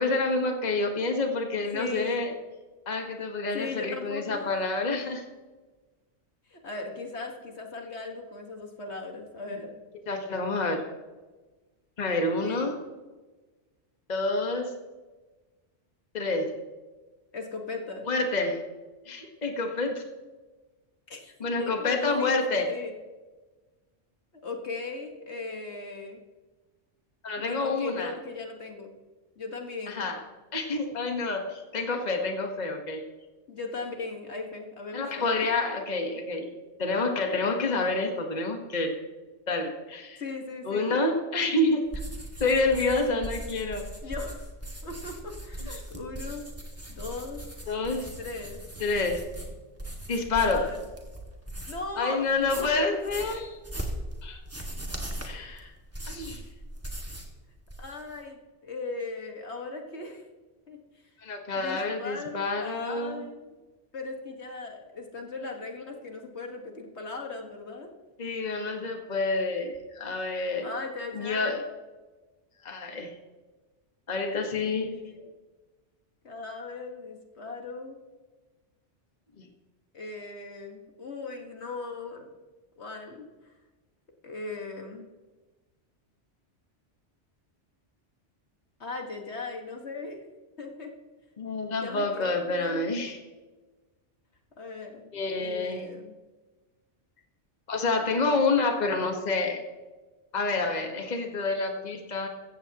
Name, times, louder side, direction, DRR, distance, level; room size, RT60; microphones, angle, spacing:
voice 1, 0.0-2.3 2.9-5.2 10.1-10.8 12.0-12.8 14.1-14.7 16.1-16.5 18.1-18.6 19.1-20.0 21.4-22.6 27.2-28.1 29.9-30.2 30.5-33.0 34.9-36.5 36.8-39.0 39.5-40.2 40.6-41.8 42.4-43.9 45.9-46.0 47.7-48.1 48.8-49.2 50.1-50.7 52.0-53.6 54.2-54.4 55.2-55.7 56.1-56.4 61.2-63.2 68.2-70.7 71.1-71.7 72.6-73.1 74.1-74.9 79.4-79.5 91.4-93.2 95.1-95.9 97.7-99.6 100.3-102.3, left 3 dB, 40° left, 3 dB, 1.4 m, -28 dB
voice 2, 1.7-2.2 3.5-4.5 6.5-9.8 12.4-12.7 17.3-18.1 21.1-21.2 21.6-22.9 24.4-26.2 27.4-28.9 29.4-30.1 33.5-35.3 40.2-40.9 44.0-44.5 44.8-46.4 46.9-47.4 48.2-48.6 50.3-50.8 51.7-52.3 52.6-52.9 57.8-60.2 60.7-60.8 61.6-63.5 63.9-67.9 70.6-71.6 74.8-75.3 76.2-78.0 79.9-82.3 82.8-83.3 84.2-85.0 88.8-90.2 90.6-90.9 91.8-93.2 94.6-95.1 95.4-96.1, left 3 dB, 65° left, 2 dB, 1.9 m, -38 dB
sound 1, 41.9-51.9 52.3-57.4 57.6-58.2, right 1 dB, 10° right, 2.0 m, -39 dB
16.0 x 15.0 x 2.9 m, 1.2 s
omnidirectional pair, 1.2 m